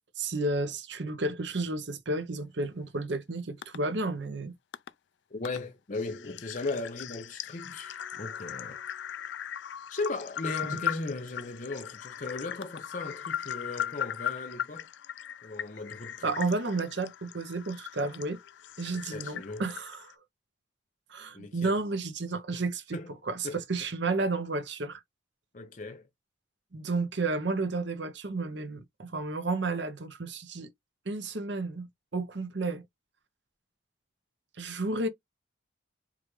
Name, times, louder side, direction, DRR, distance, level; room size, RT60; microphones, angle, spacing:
voice 1, 0.2-4.5 10.6-10.8 16.2-18.4 18.8-20.1 21.1-23.0 23.3-25.0 26.7-30.7 31.1-31.9 32.1-32.8 34.6-35.1, right 3 dB, 65° right, 0.8 m, -32 dB
sound 1, 3.6-3.8 4.7-4.9 5.4-5.6 5.9-20.1, left 9 dB, 65° left, 0.3 m, -39 dB
voice 2, 5.3-8.8 9.9-14.9 15.4-16.4 18.9-19.6 21.3-21.7 22.5-22.6 22.9-23.1 23.4-23.6 25.5-26.1, left 3 dB, 40° left, 0.7 m, -37 dB
4.8 x 2.5 x 3.1 m
head